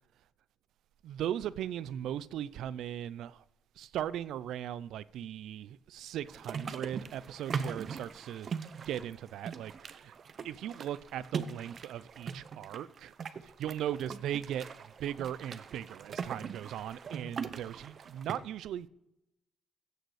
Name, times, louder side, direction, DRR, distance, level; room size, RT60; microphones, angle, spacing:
voice 1, 1.0-3.4 3.8-10.1 10.4-13.1 13.4-18.9, right 11 dB, 80° right, 0.4 m, -38 dB
sound 1, 6.3-18.4, right 6 dB, 50° right, 0.7 m, -41 dB
15.5 x 6.6 x 4.8 m
cardioid pair, 90°, 0 cm